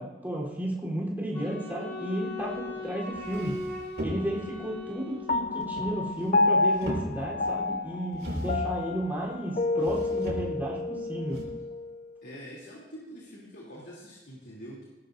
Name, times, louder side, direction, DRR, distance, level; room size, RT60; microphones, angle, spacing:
voice 1, 0.0-3.6 4.0-11.4, right 1 dB, 10° right, -5 dB, 3.7 m, -33 dB
Wind instrument woodwind instrument, 1.3-5.8, left 2 dB, 15° left, 6.2 m, -39 dB
sound 1, 2.7-2.8 3.1-4.6 5.6-6.4 6.7-7.5 8.1-8.8 9.8-10.7 11.3-11.4, equal, 90° right, 4.9 m, -36 dB
Piano, 5.3-12.0, left 3 dB, 40° left, 0.5 m, -29 dB
voice 2, 12.2-14.8, equal, 90° left, -6 dB, 3.0 m, -45 dB
20.0 x 18.0 x 2.7 m, 1.1 s
head